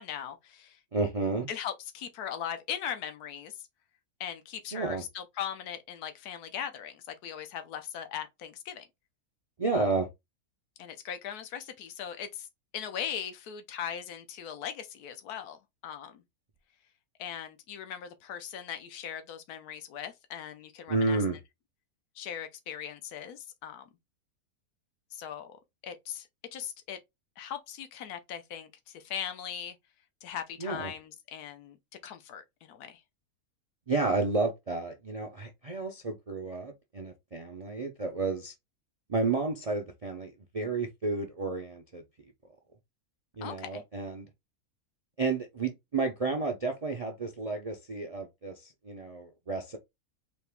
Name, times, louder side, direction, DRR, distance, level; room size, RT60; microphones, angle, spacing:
voice 1, 0.0-0.8 1.5-3.5 4.2-8.9 9.7-9.9 10.8-12.5 12.7-15.6 15.8-16.2 17.2-21.2 22.2-23.8 25.1-25.6 25.8-26.3 26.5-27.0 27.4-28.7 28.9-29.8 30.2-31.8 32.0-33.0 43.4-43.8, left 9 dB, 85° left, 1.3 m, -39 dB
voice 2, 0.9-1.5 4.7-5.0 9.6-10.1 20.9-21.4 30.6-30.9 33.9-38.5 39.1-42.0 43.4-44.3 45.2-49.8, right 3 dB, 45° right, 0.4 m, -31 dB
4.1 x 2.9 x 3.4 m
omnidirectional pair, 1.6 m